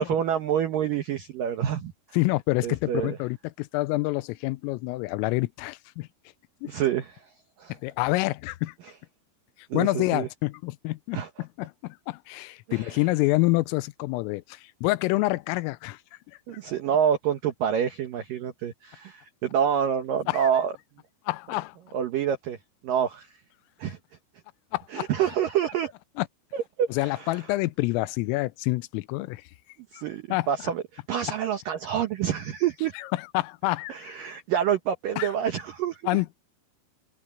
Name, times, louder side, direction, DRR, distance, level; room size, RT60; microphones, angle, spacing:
voice 1, 0.0-1.9 2.6-3.2 6.6-7.2 7.6-7.8 9.7-10.3 11.1-11.3 12.7-13.0 16.5-20.7 21.9-22.6 22.8-23.3 23.8-24.0 24.9-25.9 26.5-27.4 29.9-32.9 33.9-36.0, right 9 dB, 90° right, 1.9 m, -27 dB
voice 2, 2.1-6.1 6.6-6.7 7.8-8.7 9.7-16.0 16.5-16.6 20.3-20.5 21.3-21.8 24.7-25.1 26.2-26.3 26.9-29.4 29.9-30.0 30.3-30.5 33.0-34.1 35.2-35.3 36.1-36.4, left 21 dB, 85° left, 3.3 m, -27 dB
open air
omnidirectional pair, 5.8 m